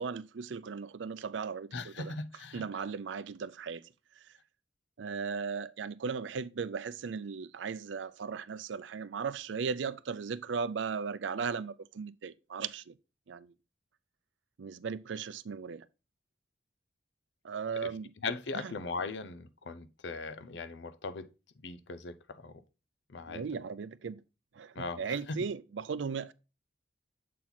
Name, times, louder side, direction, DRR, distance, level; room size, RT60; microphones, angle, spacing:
voice 1, 0.0-1.7 2.0-2.1 2.5-3.9 5.0-12.9 13.3-13.5 14.6-15.9 17.4-18.1 18.5-18.7 23.3-24.2 24.5-26.3, right 5 dB, 90° right, 0.5 m, -37 dB
voice 2, 1.7-2.8 17.8-21.3 21.6-22.5 23.1-23.4 24.8-25.4, left 3 dB, 75° left, 0.6 m, -39 dB
7.3 x 4.4 x 3.9 m
head